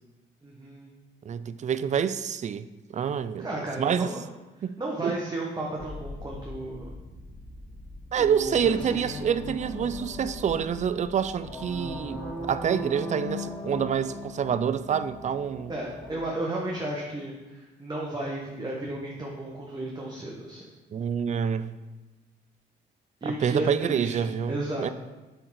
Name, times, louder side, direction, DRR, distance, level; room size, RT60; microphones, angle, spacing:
voice 1, 0.4-0.9 3.4-4.2 4.8-7.0 8.2-9.1 15.7-20.6 23.2-24.9, right 1 dB, 20° right, 1.1 m, -34 dB
voice 2, 1.3-2.7 2.9-3.5 3.8-4.1 4.6-5.1 8.1-15.7 20.9-21.7 23.2-24.9, right 8 dB, 35° right, 0.4 m, -27 dB
sound 1, 5.8-12.2, left 2 dB, 25° left, 1.2 m, -44 dB
sound 2, 8.5-16.2, left 1 dB, 5° left, 2.2 m, -38 dB
7.9 x 3.7 x 4.6 m
cardioid pair, 90°, 20 cm